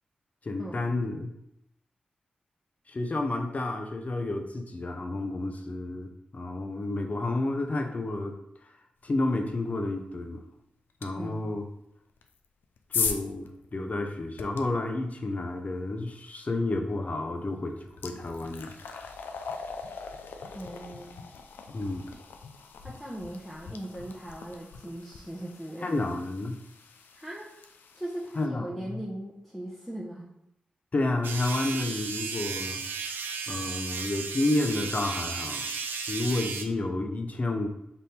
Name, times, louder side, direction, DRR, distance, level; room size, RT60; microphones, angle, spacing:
voice 1, 0.4-1.3 2.9-8.3 9.0-10.4 11.0-11.6 12.9-19.1 21.7-22.0 25.8-26.6 28.4-29.0 30.9-32.8 33.5-35.7 36.1-37.7, left 2 dB, 45° left, 4 dB, 0.7 m, -30 dB
sound 1, 11.0-11.1 12.2-14.6 16.9-17.1 17.5-28.5, left 6 dB, 85° left, 0.3 m, -39 dB
voice 2, 11.1-11.5 20.5-21.2 22.8-26.0 27.1-27.5 27.9-30.3, right 1 dB, 5° left, -6 dB, 0.8 m, -39 dB
sound 2, 31.2-36.6, right 5 dB, 85° right, 0.4 m, -34 dB
3.7 x 2.6 x 4.2 m, 0.80 s
cardioid pair, 45°, 3 cm